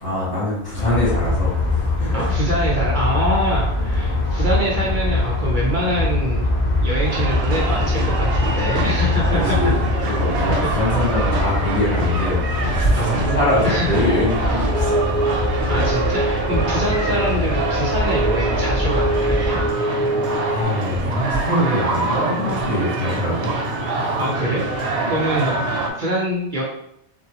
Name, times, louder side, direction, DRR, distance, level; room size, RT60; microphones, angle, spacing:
voice 1, 0.0-2.3 9.2-15.0 20.1-23.5 23.8-24.2 25.0-25.1, equal, 60° left, -8 dB, 2.0 m, -23 dB
sound 1, 0.7-19.7, left 2 dB, 35° left, 1.7 m, -23 dB
voice 2, 2.1-6.5 6.8-9.7 10.5-10.7 12.9-13.3 13.6-13.9 14.5-14.6 15.7-19.6 24.2-25.6 26.0-26.6, right 1 dB, 50° right, -3 dB, 0.7 m, -24 dB
sound 2, 7.0-25.9, right 3 dB, 90° right, 0.9 m, -26 dB
sound 3, 14.7-20.6, right 2 dB, 10° left, 0.7 m, -24 dB
3.7 x 2.3 x 2.8 m, 0.78 s
omnidirectional pair, 1.2 m